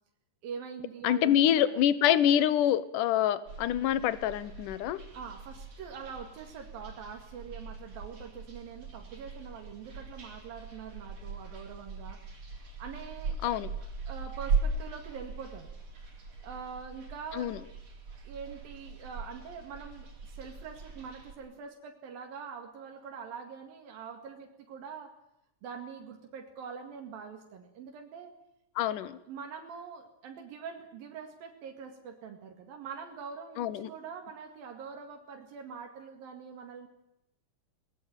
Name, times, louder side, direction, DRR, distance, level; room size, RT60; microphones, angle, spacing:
voice 1, 0.4-1.8 5.1-12.2 12.8-13.6 14.1-15.7 16.4-17.5 18.2-25.2 25.6-28.4 29.3-36.9, right 6 dB, 85° right, 3 dB, 3.9 m, -44 dB
voice 2, 1.0-5.0 13.4-13.7 17.3-17.6 28.8-29.2 33.6-33.9, left 10 dB, 70° left, 16 dB, 2.5 m, -26 dB
sound 1, 3.5-21.3, right 4 dB, 45° right, 5.3 m, -39 dB
21.0 x 20.0 x 9.0 m, 0.83 s
omnidirectional pair, 4.0 m